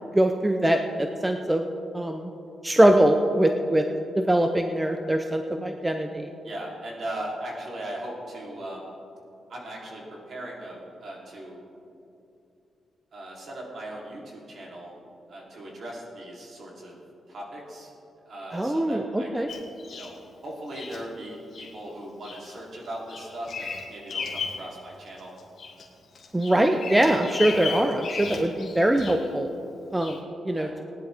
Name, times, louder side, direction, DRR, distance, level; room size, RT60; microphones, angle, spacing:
voice 1, 0.1-1.7 1.9-2.3 2.6-3.8 4.2-6.3 18.5-19.5 26.3-29.5 29.9-30.2 30.4-30.7, right 1 dB, 10° right, 5 dB, 0.6 m, -22 dB
voice 2, 6.4-8.9 9.5-11.6 13.1-14.9 15.3-17.0 17.3-17.9 18.2-19.6 19.9-20.1 20.4-25.3 30.5-30.7, right 1 dB, 55° right, -3 dB, 3.3 m, -38 dB
Bird vocalization bird call bird song, 19.5-20.2 20.7-21.0 21.5-21.7 22.2-22.5 22.8-24.7 25.1-25.8 26.2-29.3 30.0-30.2, left 5 dB, 55° left, 2.0 m, -35 dB
18.5 x 10.5 x 3.5 m, 2.7 s
cardioid pair, 115°, 0 cm